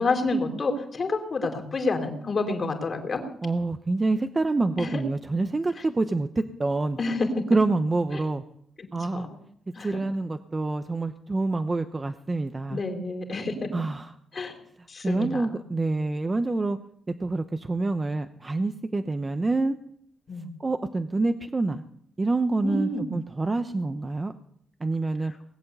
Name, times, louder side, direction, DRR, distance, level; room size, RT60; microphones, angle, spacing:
voice 1, 0.0-3.2 4.8-5.0 7.0-7.5 8.8-9.4 9.7-9.9 12.7-13.7 14.3-14.5 14.9-15.4 20.3-20.5 22.6-23.1, left 3 dB, 40° left, 4 dB, 3.6 m, -28 dB
voice 2, 3.4-6.3 6.6-7.0 7.5-8.4 8.9-9.3 9.8-12.8 13.7-14.1 15.0-16.8 17.2-19.8 20.6-21.8 22.2-24.3 24.8-25.3, right 3 dB, 25° right, 9 dB, 0.8 m, -26 dB
20.0 x 8.5 x 8.2 m, 0.70 s
cardioid pair, 105°, 0 cm